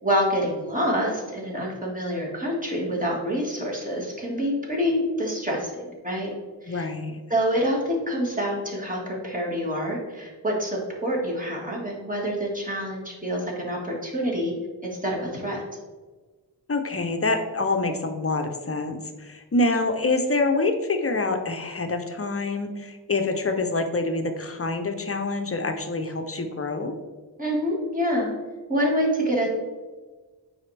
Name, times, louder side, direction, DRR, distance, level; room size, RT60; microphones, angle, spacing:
voice 1, 0.0-6.3 6.6-6.8 7.3-14.5 14.8-15.6 27.4-28.3 28.7-29.5, equal, 20° right, -3 dB, 1.7 m, -26 dB
voice 2, 6.7-7.2 16.7-26.9, left 2 dB, 35° left, 6 dB, 0.6 m, -26 dB
9.0 x 4.2 x 3.3 m, 1.4 s
wide cardioid pair, 125°, 42 cm